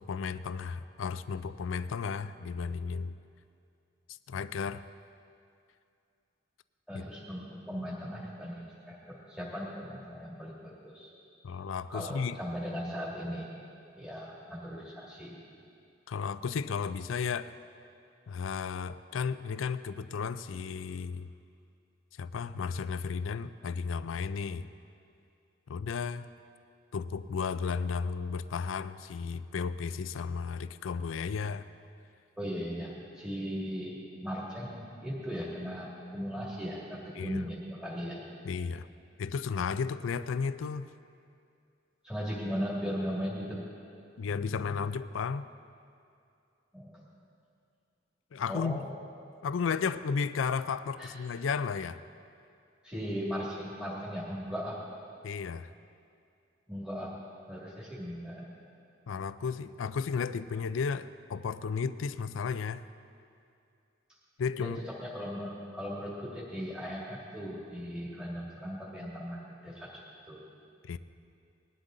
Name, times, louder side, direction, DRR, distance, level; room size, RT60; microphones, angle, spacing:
voice 1, 0.0-3.2 4.3-4.8 6.9-7.0 11.4-12.4 16.1-17.5 18.3-21.3 22.2-24.7 25.7-26.3 26.9-31.7 37.2-37.4 38.4-38.9 39.2-40.9 44.2-45.5 48.3-48.9 49.4-52.0 55.2-55.7 59.1-62.9 64.4-64.8 70.8-71.0, left 5 dB, 80° left, 14 dB, 0.4 m, -33 dB
voice 2, 6.9-11.1 11.9-13.5 14.0-15.4 32.4-38.2 42.0-43.6 46.7-47.0 48.5-48.9 51.0-51.1 52.8-54.8 56.7-57.2 57.5-58.5 64.6-64.7 65.0-70.0 70.3-70.4, equal, 5° right, -7 dB, 2.2 m, -38 dB
20.0 x 12.0 x 3.8 m, 2.5 s
head